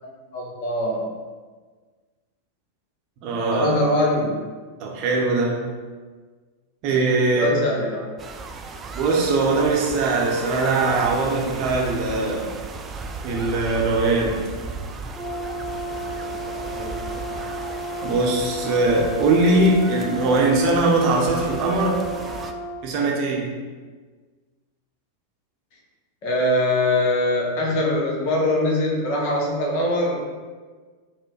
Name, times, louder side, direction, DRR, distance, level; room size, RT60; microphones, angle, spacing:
voice 1, 0.3-1.0 3.5-4.4 7.4-8.0 16.7-17.0 26.2-30.2, left 1 dB, 45° left, -2 dB, 1.0 m, -22 dB
voice 2, 3.2-3.7 4.8-5.7 6.8-7.5 8.9-12.5 13.2-14.4 18.0-22.0 22.8-23.6, right 2 dB, 40° right, -1 dB, 0.8 m, -21 dB
sound 1, 8.2-22.5, right 4 dB, 20° right, 0.3 m, -35 dB
Brass instrument, 15.1-22.8, right 1 dB, 15° left, 0.6 m, -33 dB
4.5 x 2.2 x 4.6 m, 1.4 s
figure-of-eight pair, 90°, 0 cm